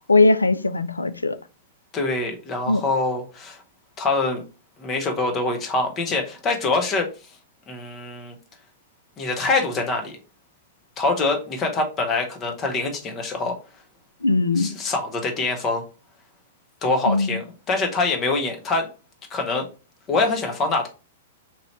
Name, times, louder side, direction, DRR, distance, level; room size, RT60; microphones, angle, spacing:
voice 1, 0.1-1.4 2.7-2.8 14.2-14.7 17.1-17.4, left 3 dB, 80° left, 0.3 m, -19 dB
voice 2, 1.9-3.6 4.0-4.4 4.8-7.1 7.7-8.3 9.2-10.2 11.0-13.6 14.6-15.8 16.8-18.9 19.3-19.7 20.1-20.9, left 3 dB, 25° left, 1.0 m, -24 dB
3.0 x 2.7 x 4.2 m
figure-of-eight pair, 105°, 0 cm